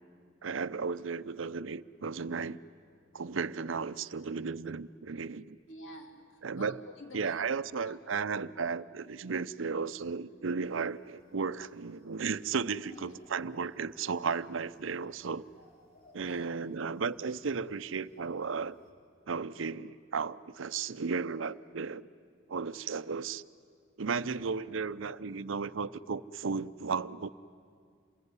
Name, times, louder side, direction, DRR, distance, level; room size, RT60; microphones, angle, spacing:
voice 1, 0.4-2.6 3.1-5.6 6.4-6.8 7.1-15.5 16.1-18.8 19.3-22.1 22.5-23.4 24.0-27.3, right 5 dB, 70° right, 14 dB, 0.6 m, -34 dB
voice 2, 5.7-8.3 12.9-13.2 16.2-16.6 24.2-24.5, left 1 dB, 70° left, 4 dB, 2.8 m, -50 dB
sound 1, 10.6-18.9, equal, 45° left, 3.6 m, -65 dB
28.0 x 20.5 x 9.7 m, 2.2 s
head